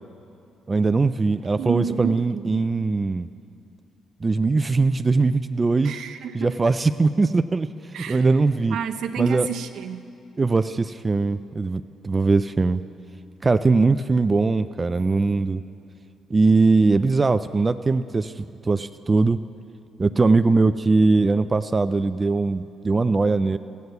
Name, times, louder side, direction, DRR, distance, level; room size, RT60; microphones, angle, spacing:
voice 1, 0.7-3.3 4.2-6.0 6.3-7.7 8.1-8.8 9.2-9.5 10.4-12.8 13.4-15.6 16.3-19.4 20.0-23.6, right 3 dB, 25° right, 11 dB, 0.3 m, -21 dB
voice 2, 1.6-2.5 5.8-6.6 7.9-8.3 8.7-10.1, right 8 dB, 75° right, 6 dB, 0.6 m, -29 dB
14.0 x 9.4 x 8.0 m, 2.6 s
cardioid pair, 90°, 0 cm